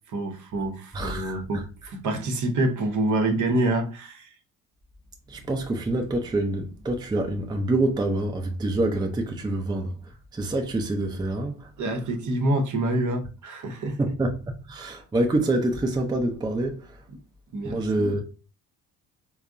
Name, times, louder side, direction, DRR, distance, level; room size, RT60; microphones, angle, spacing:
voice 1, 0.1-4.3 11.8-14.1 17.5-18.1, right 1 dB, 50° right, 0.8 m, -27 dB
voice 2, 0.9-1.6 5.3-11.9 14.0-17.0 17.6-18.2, right 2 dB, 10° right, 0.5 m, -27 dB
3.4 x 2.0 x 2.4 m
supercardioid pair, 65°, 38 cm